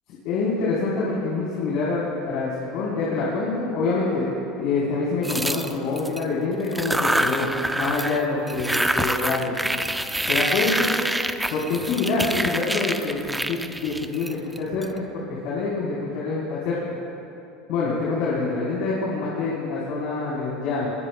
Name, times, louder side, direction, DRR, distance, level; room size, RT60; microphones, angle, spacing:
voice 1, 0.2-9.7 10.3-10.9 11.5-16.8 17.7-20.9, left 3 dB, 70° left, -7 dB, 4.0 m, -26 dB
sound 1, 5.2-6.2 6.7-8.2 8.5-14.9, right 1 dB, 5° right, 0.5 m, -26 dB
24.5 x 20.5 x 2.3 m, 2.9 s
supercardioid pair, 135°, 0 cm